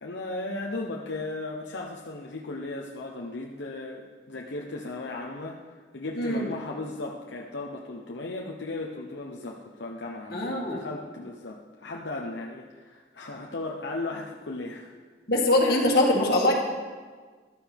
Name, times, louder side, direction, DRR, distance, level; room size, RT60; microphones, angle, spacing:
voice 1, 0.0-14.9, left 2 dB, 80° left, -1 dB, 0.9 m, -36 dB
voice 2, 6.2-6.5 10.3-10.8 15.3-16.5, left 1 dB, 55° left, -2 dB, 2.1 m, -22 dB
14.0 x 12.5 x 3.5 m, 1.5 s
head